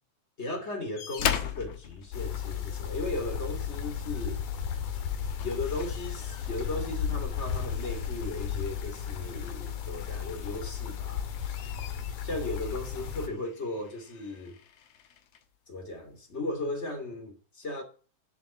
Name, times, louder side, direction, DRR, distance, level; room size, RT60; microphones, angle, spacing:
voice 1, 0.4-4.4 5.4-11.3 12.2-14.6 15.7-17.8, left 2 dB, 25° left, 2.7 m, -36 dB
sound 1, 1.0-3.0 4.5-4.7 5.1-10.9 11.3-15.5 16.4-16.5, left 9 dB, 65° left, 2.2 m, -40 dB
sound 2, 2.1-13.3, left 8 dB, 85° left, 3.1 m, -34 dB
12.0 x 7.6 x 7.4 m
omnidirectional pair, 3.4 m